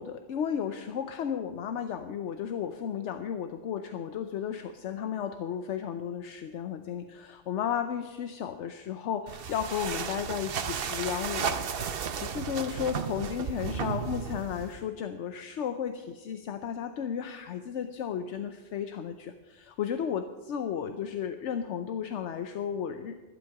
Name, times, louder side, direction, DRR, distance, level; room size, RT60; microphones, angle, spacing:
voice 1, 0.0-23.2, left 8 dB, 75° left, 8 dB, 1.0 m, -34 dB
sound 1, 9.3-14.8, right 7 dB, 55° right, 0.9 m, -34 dB
12.0 x 12.0 x 5.8 m, 1.3 s
omnidirectional pair, 1.2 m